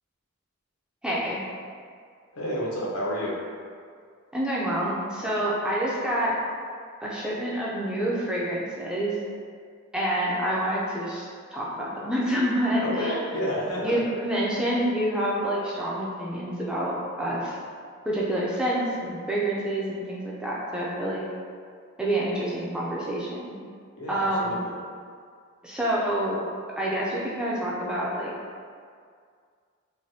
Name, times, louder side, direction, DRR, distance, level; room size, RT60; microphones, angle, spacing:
voice 1, 1.0-1.4 4.3-6.3 7.0-9.2 9.9-11.3 11.5-13.3 13.8-17.6 18.1-21.2 22.0-23.5 24.1-24.6 25.6-26.4 26.8-28.3, right 1 dB, 5° right, -6 dB, 0.3 m, -27 dB
voice 2, 2.3-3.3 12.8-14.0 24.0-24.7, equal, 85° left, -5 dB, 0.7 m, -30 dB
3.2 x 2.2 x 2.7 m, 2.1 s
head